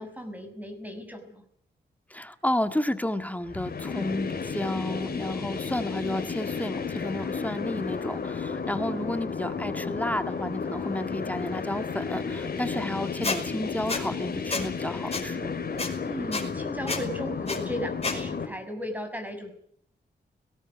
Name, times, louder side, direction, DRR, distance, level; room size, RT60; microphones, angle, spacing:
voice 1, 0.0-1.4 8.7-9.0 16.0-19.5, equal, 10° right, 7 dB, 6.2 m, -36 dB
voice 2, 2.1-15.5, left 1 dB, 10° left, 9 dB, 1.9 m, -32 dB
sound 1, 3.5-18.4, left 5 dB, 60° left, 3.7 m, -33 dB
Squeak, 13.2-13.4 13.9-14.0 14.5-14.6 15.1-15.2 15.8-15.9 16.3-16.4 16.9-17.0 17.5-17.6 18.0-18.2, left 3 dB, 35° left, 5.1 m, -29 dB
19.5 x 17.0 x 9.3 m, 0.66 s
cardioid pair, 75°, 18 cm